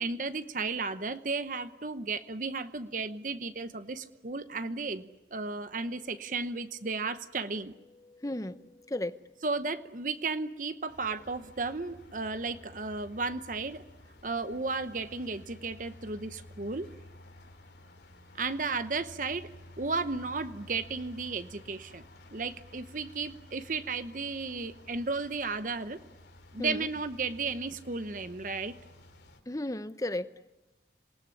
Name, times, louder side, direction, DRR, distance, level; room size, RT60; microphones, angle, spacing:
voice 1, 0.0-7.7 9.4-13.8 14.2-16.9 18.3-19.5 19.8-22.0 22.3-26.0 26.5-28.7, right 4 dB, 45° right, 11 dB, 0.9 m, -34 dB
voice 2, 6.1-6.5 7.9-9.4 26.6-26.9 29.5-30.3, left 1 dB, 20° left, 13 dB, 0.8 m, -36 dB
sound 1, 10.9-29.4, left 1 dB, 75° left, 3.6 m, -53 dB
27.0 x 19.5 x 9.9 m, 1.1 s
head